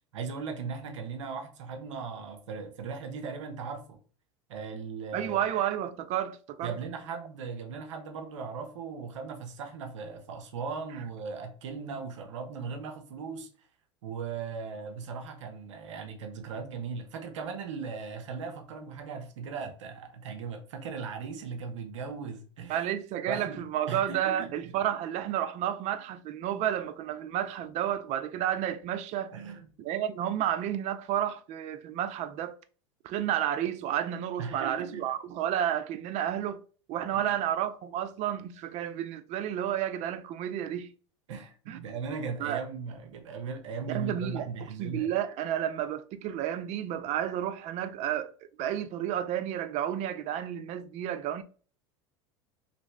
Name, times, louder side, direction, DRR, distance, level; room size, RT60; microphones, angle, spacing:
voice 1, 0.1-4.0 4.5-5.4 6.6-13.5 14.0-22.9 23.3-24.5 29.3-29.7 34.4-35.0 37.1-37.4 41.3-45.1, right 5 dB, 85° right, 0.7 m, -38 dB
voice 2, 5.1-6.7 22.7-29.3 29.8-32.5 33.0-36.6 36.9-40.9 41.7-41.8 42.4-42.6 43.9-44.5 44.8-48.3 48.6-51.4, right 10 dB, 50° right, 0.4 m, -31 dB
3.0 x 2.6 x 3.2 m
hypercardioid pair, 95°, 15 cm